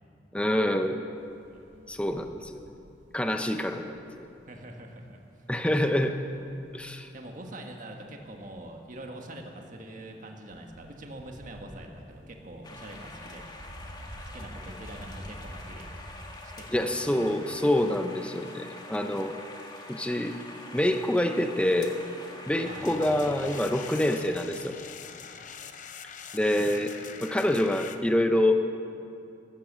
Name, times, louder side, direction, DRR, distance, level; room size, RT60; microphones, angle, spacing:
voice 1, 0.3-1.0 1.9-2.6 3.1-3.9 5.5-6.2 6.7-7.1 16.7-19.3 19.9-20.3 20.7-21.9 22.5-24.7 26.3-26.9 27.2-28.6, left 1 dB, 5° left, 6 dB, 0.6 m, -26 dB
sound 1, 1.1-3.4 3.8-4.5 5.7-5.8 6.3-6.9 8.0-8.8 10.5-16.6, equal, 90° right, 4.4 m, -48 dB
voice 2, 1.5-2.0 4.5-5.4 7.1-13.5 14.2-15.9 16.4-17.4 17.7-17.8 22.6-22.9 26.5-26.8, right 1 dB, 45° right, 2 dB, 1.5 m, -44 dB
sound 2, 12.6-24.2, left 2 dB, 25° left, 1.4 m, -45 dB
sound 3, 22.8-28.0, left 7 dB, 45° left, 0.8 m, -44 dB
13.5 x 13.0 x 7.3 m, 2.6 s
head